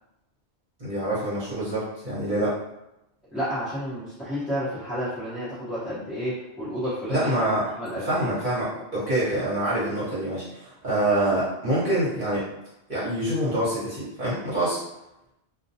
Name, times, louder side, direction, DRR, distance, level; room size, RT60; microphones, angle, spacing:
voice 1, 0.8-2.6 7.1-7.7 7.9-12.5 12.9-14.8, right 1 dB, 50° right, -11 dB, 1.1 m, -26 dB
voice 2, 3.3-7.5 7.8-8.3, equal, ahead, -13 dB, 0.8 m, -31 dB
2.4 x 2.1 x 2.7 m, 0.87 s
omnidirectional pair, 1.1 m